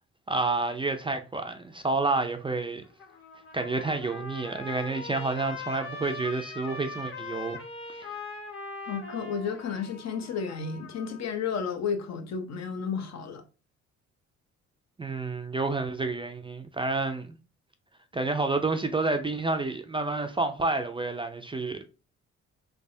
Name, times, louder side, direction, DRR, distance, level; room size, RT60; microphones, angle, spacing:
voice 1, 0.3-2.8 3.5-7.6 7.9-8.2 15.0-17.4 18.1-21.9, right 3 dB, 15° right, 0.4 m, -29 dB
Trumpet, 2.8-11.3, left 3 dB, 45° left, 1.1 m, -41 dB
voice 2, 8.9-13.4, left 6 dB, 60° left, 0.8 m, -32 dB
3.4 x 3.2 x 2.6 m
cardioid pair, 90°, 30 cm